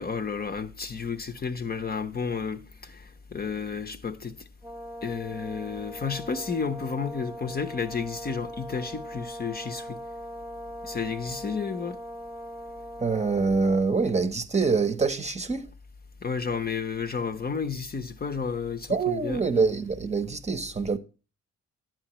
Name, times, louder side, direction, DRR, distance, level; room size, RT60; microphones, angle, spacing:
voice 1, 0.0-3.0 3.3-4.4 5.0-10.0 10.8-12.0 16.2-19.4, left 5 dB, 30° left, 0.9 m, -32 dB
Brass instrument, 4.6-13.5, equal, 5° right, 1.2 m, -40 dB
voice 2, 13.0-15.7 18.9-21.0, right 4 dB, 20° right, 0.9 m, -25 dB
10.5 x 9.0 x 3.0 m
cardioid pair, 90°, 30 cm